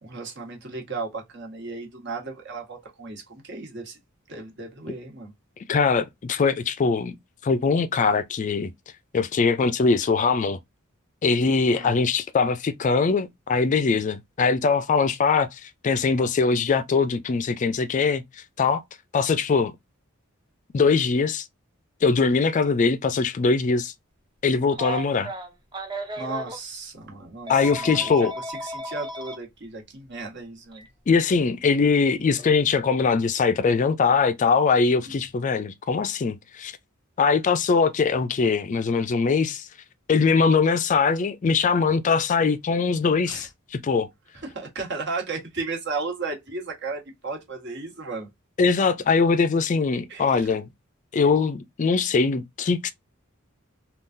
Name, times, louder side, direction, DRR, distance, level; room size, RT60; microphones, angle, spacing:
voice 1, 0.0-4.0 4.3-5.3 11.7-12.0 26.2-28.1 28.5-30.8 43.3-43.5 44.4-48.3 50.1-50.5, right 3 dB, 55° right, 1.4 m, -35 dB
voice 2, 5.7-7.2 7.4-8.7 9.1-10.6 11.2-18.2 18.6-18.8 19.1-19.7 20.7-21.4 22.0-23.9 24.4-25.3 27.5-28.3 31.1-36.7 37.2-39.7 40.1-44.1 48.6-50.7 51.1-52.9, left 4 dB, 35° left, 0.3 m, -22 dB
Telephone, 24.7-26.6 27.5-29.4 30.7-30.9 32.4-32.6, right 1 dB, 20° right, 0.6 m, -34 dB
3.7 x 2.3 x 2.5 m
head